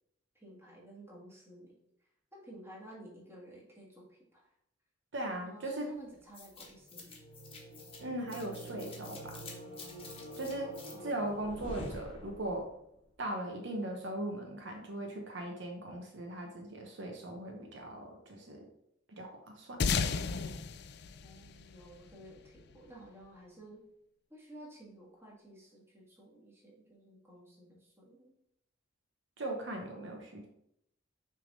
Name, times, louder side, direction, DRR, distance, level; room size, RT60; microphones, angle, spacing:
voice 1, 0.3-1.8 2.3-4.5 5.4-7.1 10.9-11.7 21.2-23.8 24.3-28.3, right 1 dB, 15° right, -4 dB, 1.9 m, -53 dB
voice 2, 5.1-5.9 8.0-9.4 10.4-10.7 11.0-12.7 13.2-18.7 19.1-19.8 29.4-30.5, right 1 dB, 65° right, 2 dB, 1.0 m, -39 dB
sound 1, 6.3-12.7, left 1 dB, 30° left, 1.3 m, -46 dB
sound 2, 19.8-22.6, left 5 dB, 55° left, 0.4 m, -34 dB
6.4 x 3.5 x 5.3 m, 0.77 s
head